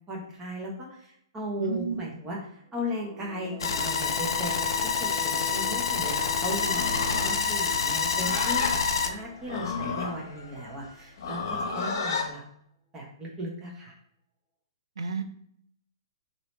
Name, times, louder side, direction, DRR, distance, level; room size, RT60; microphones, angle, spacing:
voice 1, 0.1-2.4 2.7-4.7 5.0-12.4 12.9-13.9, equal, 20° right, -2 dB, 1.0 m, -36 dB
voice 2, 1.6-2.0 15.0-15.2, right 5 dB, 80° right, 8 dB, 0.4 m, -31 dB
sound 1, 2.6-11.2, right 4 dB, 5° right, 0.6 m, -45 dB
sound 2, 3.6-9.1, left 5 dB, 70° left, 0.4 m, -27 dB
Livestock farm animals working animals, 6.6-12.3, left 4 dB, 55° left, 0.9 m, -33 dB
3.0 x 2.7 x 3.2 m, 0.68 s
hypercardioid pair, 125°, 3 cm